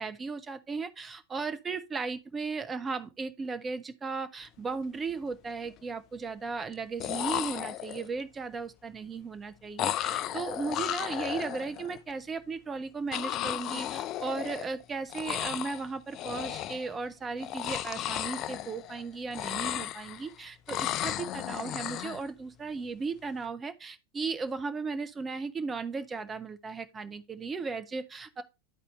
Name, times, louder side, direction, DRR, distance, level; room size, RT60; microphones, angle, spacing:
voice 1, 0.0-28.4, right 4 dB, 20° right, 0.7 m, -36 dB
sound 1, 4.6-4.8 5.1-5.7 6.7-6.8 7.0-8.2 9.8-12.0 13.1-14.8 15.1-15.8 16.1-16.9 17.4-19.0 19.3-20.3 20.7-22.2, left 12 dB, 35° left, 0.4 m, -34 dB
11.5 x 4.1 x 3.0 m
figure-of-eight pair, 90°, 0 cm